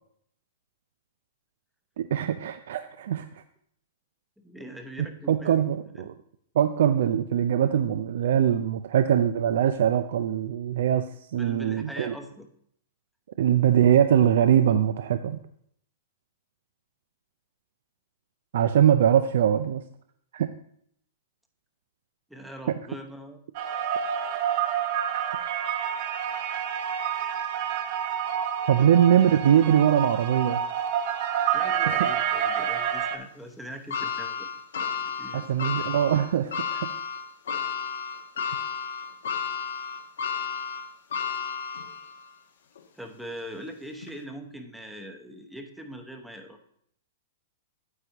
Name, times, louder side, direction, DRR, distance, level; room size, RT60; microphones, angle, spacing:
voice 1, 2.0-3.3 5.0-6.1 6.6-11.1 11.3-12.1 13.4-15.4 18.5-19.8 20.3-20.5 22.7-22.8 28.7-30.6 31.9-32.0 35.3-36.9, right 9 dB, 70° right, 10 dB, 0.4 m, -22 dB
voice 2, 4.4-5.6 6.0-6.1 11.4-12.5 22.3-23.4 31.5-34.5 35.0-35.5 42.9-46.6, equal, ahead, 5 dB, 0.9 m, -42 dB
sound 1, 23.5-33.2, right 9 dB, 45° right, 0.8 m, -28 dB
sound 2, 33.9-42.3 42.8-42.9 44.0-44.1, left 6 dB, 85° left, 1.1 m, -32 dB
9.4 x 8.0 x 2.9 m, 0.67 s
hypercardioid pair, 150°, 0 cm